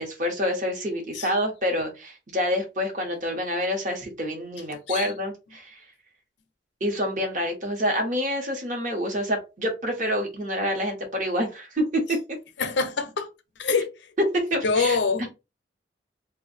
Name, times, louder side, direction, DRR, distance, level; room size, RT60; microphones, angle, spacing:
voice 1, 0.0-5.8 6.8-12.2 14.3-15.0, equal, 45° right, 1.1 m, -27 dB
voice 2, 12.6-13.3 13.6-13.9 14.6-15.3, left 4 dB, 75° left, 0.6 m, -25 dB
2.6 x 2.4 x 3.9 m
head